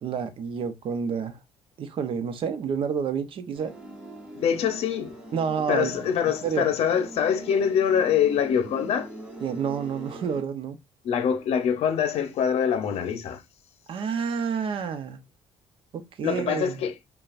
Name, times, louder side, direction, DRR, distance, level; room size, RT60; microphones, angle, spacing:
voice 1, 0.0-1.4 1.8-3.7 5.3-6.1 6.4-6.7 9.4-10.8 13.9-15.2 15.9-16.8, right 6 dB, 55° right, 0.7 m, -29 dB
sound 1, 3.5-10.4, right 1 dB, 10° right, 1.1 m, -42 dB
voice 2, 4.4-5.1 5.7-9.1 11.0-13.4 16.2-16.9, left 8 dB, 65° left, 0.7 m, -24 dB
5.3 x 2.3 x 2.5 m
cardioid pair, 115°, 11 cm